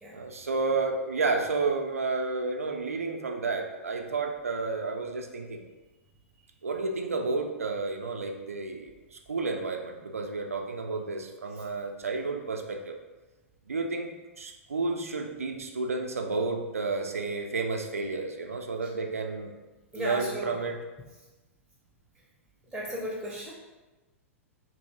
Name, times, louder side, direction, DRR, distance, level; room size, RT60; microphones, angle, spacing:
voice 1, 0.1-5.6 6.6-13.0 13.7-19.6 19.9-20.8, right 3 dB, 75° right, 3 dB, 0.4 m, -31 dB
voice 2, 19.9-20.5 22.7-23.5, equal, ahead, -5 dB, 0.5 m, -35 dB
2.6 x 2.6 x 3.2 m, 1.2 s
figure-of-eight pair, 100°, 8 cm